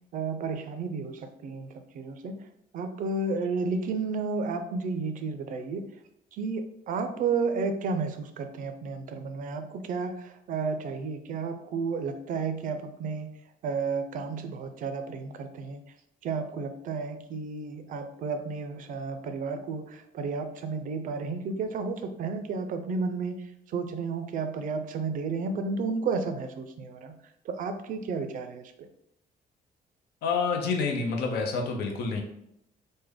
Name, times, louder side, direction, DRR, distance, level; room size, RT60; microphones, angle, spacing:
voice 1, 0.1-2.4 2.7-5.9 6.3-13.3 13.6-15.8 16.2-27.1 27.5-28.9, right 4 dB, 55° right, 8 dB, 0.4 m, -32 dB
voice 2, 30.2-32.2, left 4 dB, 90° left, 2 dB, 0.6 m, -28 dB
3.3 x 2.1 x 3.5 m, 0.77 s
cardioid pair, 135°, 16 cm